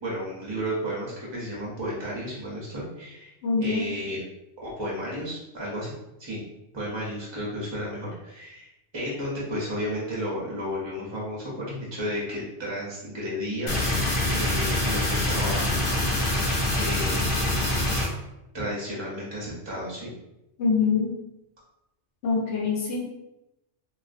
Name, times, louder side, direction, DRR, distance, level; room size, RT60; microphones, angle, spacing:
voice 1, 0.0-3.3 3.6-4.2 4.6-5.9 6.2-6.4 6.7-8.7 8.9-13.8 14.3-15.7 16.8-17.3 18.5-20.1, equal, 40° right, -5 dB, 0.4 m, -32 dB
voice 2, 3.4-3.8 20.6-21.1 22.2-23.0, left 5 dB, 80° left, -2 dB, 1.0 m, -24 dB
sound 1, 13.7-18.1, left 1 dB, 55° left, 0.8 m, -25 dB
2.3 x 2.3 x 2.5 m, 0.89 s
omnidirectional pair, 1.2 m